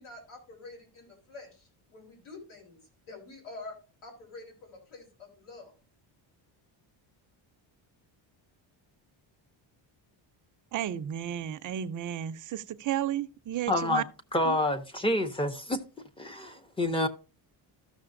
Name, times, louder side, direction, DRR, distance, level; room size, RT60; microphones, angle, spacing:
voice 1, 0.0-5.7, left 3 dB, 85° left, 3.7 m, -47 dB
voice 2, 10.7-14.0 14.5-14.6, right 11 dB, 40° right, 0.5 m, -33 dB
voice 3, 13.7-14.0 14.3-15.8 16.2-17.1, left 1 dB, 10° left, 0.5 m, -28 dB
14.0 x 6.4 x 2.5 m
cardioid pair, 160°, 48 cm